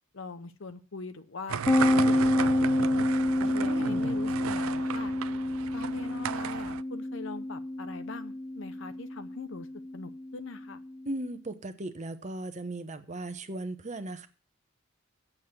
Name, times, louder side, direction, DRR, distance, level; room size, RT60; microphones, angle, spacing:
voice 1, 0.1-2.5 2.8-3.1 3.4-5.1 5.7-9.7 9.9-10.8, left 3 dB, 65° left, 0.8 m, -42 dB
sound 1, 1.5-6.8, right 8 dB, 85° right, 0.4 m, -35 dB
sound 2, 1.7-11.1, left 1 dB, 10° left, 0.4 m, -29 dB
voice 2, 3.4-4.1 11.1-14.3, right 2 dB, 35° right, 0.9 m, -37 dB
8.6 x 7.4 x 7.8 m
head